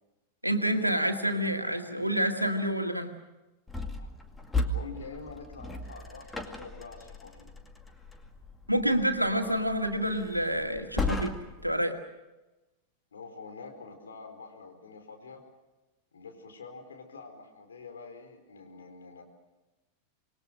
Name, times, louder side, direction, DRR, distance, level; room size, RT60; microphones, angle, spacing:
voice 1, 0.4-3.1 8.7-11.3 11.6-12.0, equal, 90° right, 5 dB, 2.0 m, -28 dB
sound 1, 3.7-11.7, left 2 dB, 10° left, 2.2 m, -36 dB
voice 2, 4.7-7.5 13.1-15.4 16.1-19.2, left 4 dB, 70° left, 3 dB, 4.6 m, -46 dB
26.5 x 21.0 x 6.5 m, 1.1 s
figure-of-eight pair, 90°, 0 cm